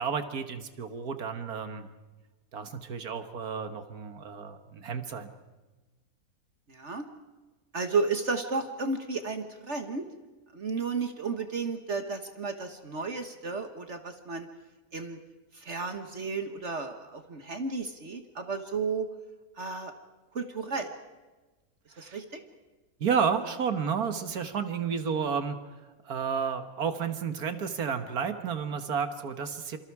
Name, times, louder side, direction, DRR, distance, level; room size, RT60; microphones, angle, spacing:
voice 1, 0.0-1.9 2.5-5.3 22.0-22.2 23.0-25.6 26.1-29.8, right 6 dB, 85° right, 9 dB, 1.9 m, -31 dB
voice 2, 6.7-7.1 7.7-10.1 10.5-14.5 14.9-15.2 15.5-19.1 19.6-19.9 20.4-20.9 22.0-22.4, right 4 dB, 50° right, 7 dB, 1.7 m, -33 dB
27.5 x 25.5 x 4.8 m, 1.2 s
omnidirectional pair, 1.5 m